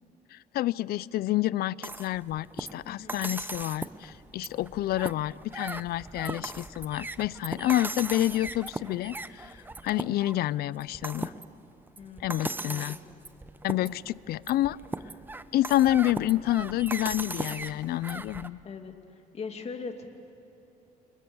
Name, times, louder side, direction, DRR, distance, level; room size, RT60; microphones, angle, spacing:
voice 1, 0.3-9.5 9.8-11.3 12.2-13.0 13.6-14.8 15.5-18.6, left 14 dB, 65° left, 21 dB, 0.5 m, -28 dB
sound 1, 1.8-18.5, right 2 dB, 10° right, 0.8 m, -38 dB
voice 2, 2.8-3.2 12.0-13.0 13.9-14.0 18.6-18.9 19.3-20.1, left 5 dB, 40° left, 5 dB, 2.6 m, -40 dB
29.0 x 28.0 x 7.1 m, 3.0 s
cardioid pair, 110°, 17 cm